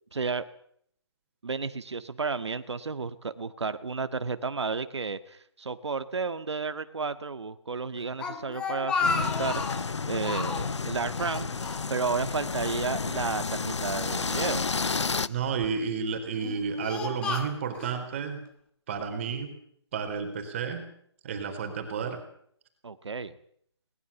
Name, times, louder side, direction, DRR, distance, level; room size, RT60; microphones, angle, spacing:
voice 1, 0.1-0.5 1.4-11.5 11.9-14.7 22.8-23.3, right 4 dB, 75° right, 11 dB, 1.7 m, -32 dB
Speech, 8.0-9.9 10.2-10.8 11.2-12.3 12.5-12.7 13.5-14.5 15.2-15.7 16.3-18.0, left 4 dB, 5° left, 1.2 m, -33 dB
sound 1, 9.0-15.3, left 4 dB, 90° left, 0.9 m, -31 dB
voice 2, 15.3-18.4 18.9-19.6 19.9-20.9 21.2-22.2, right 6 dB, 25° right, 5 dB, 3.9 m, -31 dB
21.5 x 20.0 x 7.0 m, 0.66 s
hypercardioid pair, 165°, 14 cm